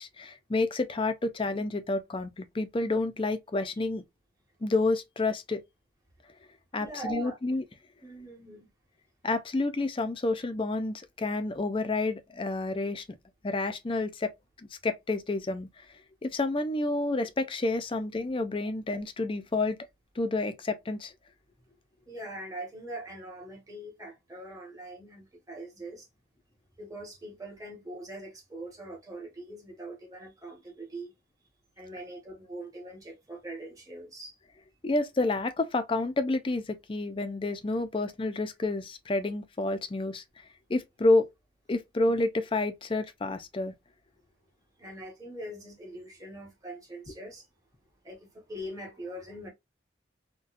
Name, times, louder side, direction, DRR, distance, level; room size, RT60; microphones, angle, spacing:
voice 1, 0.0-4.0 4.6-5.6 6.7-7.6 9.2-13.0 13.4-14.3 14.6-15.8 16.2-19.8 20.2-21.1 34.8-40.2 40.7-41.3 41.7-43.7, left 2 dB, 30° left, 0.4 m, -29 dB
voice 2, 6.8-7.4 8.0-8.7 22.1-26.1 26.8-31.1 31.8-34.4 44.8-47.5 48.0-49.5, right 1 dB, 20° right, 1.3 m, -42 dB
4.0 x 2.2 x 2.5 m
head